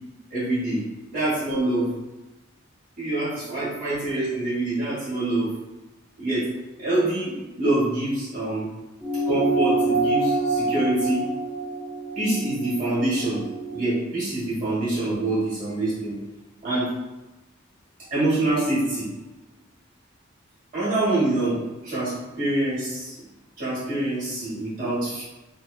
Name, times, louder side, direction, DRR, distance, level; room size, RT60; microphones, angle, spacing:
voice 1, 0.3-0.8 1.1-1.9 3.0-5.5 6.2-6.5 6.8-8.7 9.3-11.2 12.2-13.4 13.7-16.2 16.6-16.9 18.1-19.0 20.7-23.2 23.6-25.2, right 2 dB, 40° right, -10 dB, 0.9 m, -25 dB
sound 1, 9.0-13.8, right 2 dB, ahead, 0.3 m, -26 dB
2.6 x 2.1 x 2.2 m, 1.1 s
head